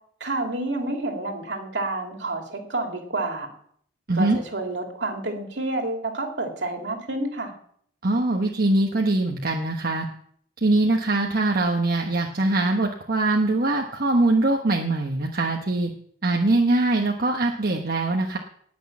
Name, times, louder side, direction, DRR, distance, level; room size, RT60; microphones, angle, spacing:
voice 1, 0.2-3.5 4.1-7.5, right 2 dB, 70° right, 3 dB, 2.8 m, -29 dB
voice 2, 8.0-10.1 10.6-15.9 16.2-18.4, right 2 dB, 55° right, 2 dB, 1.2 m, -22 dB
19.0 x 6.4 x 7.2 m, 0.64 s
head